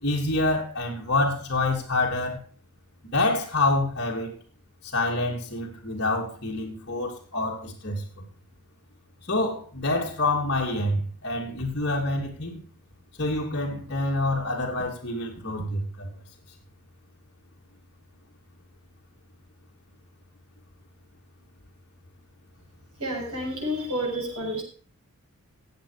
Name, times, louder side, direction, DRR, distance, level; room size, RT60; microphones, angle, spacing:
voice 1, 0.0-2.4 3.0-4.3 4.8-8.2 9.3-12.6 13.2-16.1, left 2 dB, 50° left, -2 dB, 2.9 m, -27 dB
voice 2, 23.0-24.6, equal, 80° right, -1 dB, 6.9 m, -30 dB
15.5 x 8.3 x 5.0 m, 0.42 s
head